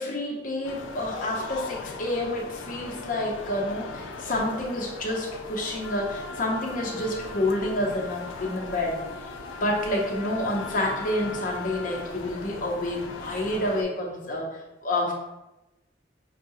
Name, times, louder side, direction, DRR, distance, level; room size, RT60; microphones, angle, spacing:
voice 1, 0.0-15.1, left 1 dB, 45° left, -2 dB, 0.7 m, -29 dB
sound 1, 0.6-13.8, left 4 dB, 85° left, 0.4 m, -39 dB
Wind instrument woodwind instrument, 5.8-12.1, left 3 dB, 75° right, 1.0 m, -42 dB
5.4 x 2.2 x 2.7 m, 0.99 s
head